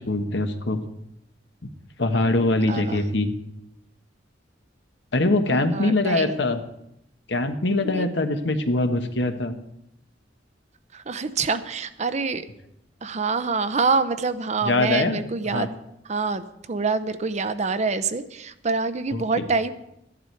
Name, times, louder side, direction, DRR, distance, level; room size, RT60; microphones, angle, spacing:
voice 1, 0.1-0.8 1.6-1.7 2.0-3.3 5.1-6.6 7.3-9.5 14.6-15.2 15.5-15.7 19.1-19.2, left 2 dB, 65° left, 7 dB, 1.1 m, -23 dB
voice 2, 2.7-3.0 5.5-6.3 7.8-8.1 10.9-12.4 13.0-15.8 16.0-19.7, right 4 dB, 35° right, 11 dB, 0.6 m, -26 dB
14.0 x 11.0 x 4.6 m, 0.81 s
head